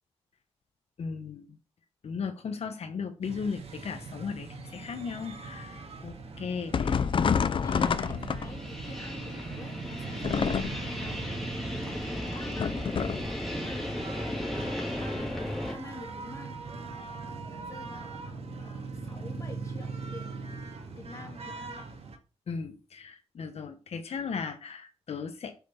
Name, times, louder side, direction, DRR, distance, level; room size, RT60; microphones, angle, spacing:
voice 1, 1.0-1.5 2.0-5.8 6.0-6.9 7.7-7.9 22.5-25.5, left 5 dB, 70° left, 6 dB, 1.2 m, -36 dB
sound 1, 3.2-22.2, right 4 dB, 65° right, 2.1 m, -41 dB
sound 2, 5.4-5.5 6.1-15.7, left 1 dB, ahead, 3.0 m, -36 dB
sound 3, 6.7-8.8 10.2-11.0 12.6-13.4, left 6 dB, 50° left, 0.6 m, -28 dB
voice 2, 6.8-13.9 14.9-16.6 17.5-20.6 21.0-21.8, left 3 dB, 30° left, 2 dB, 2.9 m, -47 dB
8.5 x 6.3 x 7.0 m, 0.34 s
wide cardioid pair, 150°, 11 cm